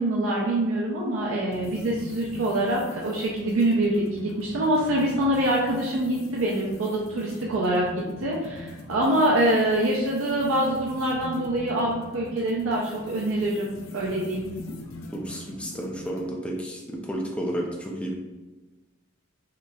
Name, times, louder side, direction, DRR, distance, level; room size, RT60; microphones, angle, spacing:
voice 1, 0.0-7.9 8.2-14.5, right 1 dB, 75° right, -3 dB, 0.5 m, -25 dB
sound 1, 1.5-16.3, left 1 dB, 75° left, 0.5 m, -42 dB
voice 2, 15.1-18.1, equal, 5° left, -2 dB, 0.5 m, -32 dB
4.0 x 3.1 x 2.3 m, 1.2 s
head